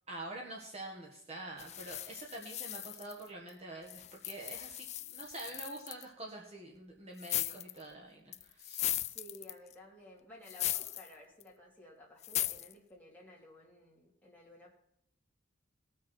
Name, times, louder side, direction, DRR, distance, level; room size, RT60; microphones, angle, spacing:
voice 1, 0.1-8.9, right 2 dB, 30° right, -2 dB, 1.6 m, -46 dB
sound 1, 1.6-3.5 3.9-6.0 7.2-7.8 8.3-9.7 10.5-11.1 11.4-11.5 12.2-12.7, left 13 dB, 30° left, 0.3 m, -38 dB
voice 2, 8.9-14.7, equal, 10° left, -4 dB, 3.0 m, -55 dB
19.5 x 6.5 x 4.6 m, 0.78 s
head